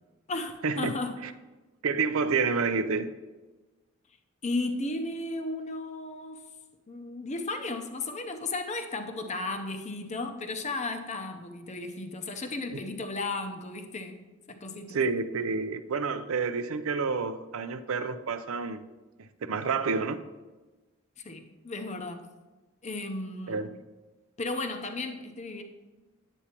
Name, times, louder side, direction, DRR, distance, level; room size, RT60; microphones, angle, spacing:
voice 1, 0.3-1.1 4.4-6.4 6.9-14.2 14.5-15.0 21.2-22.3 22.8-23.6 24.4-25.6, left 2 dB, 35° left, 6 dB, 0.7 m, -34 dB
voice 2, 1.8-3.1 14.9-18.8 19.4-20.2 23.5-23.7, right 4 dB, 75° right, 10 dB, 0.5 m, -29 dB
9.9 x 8.2 x 2.9 m, 1.2 s
head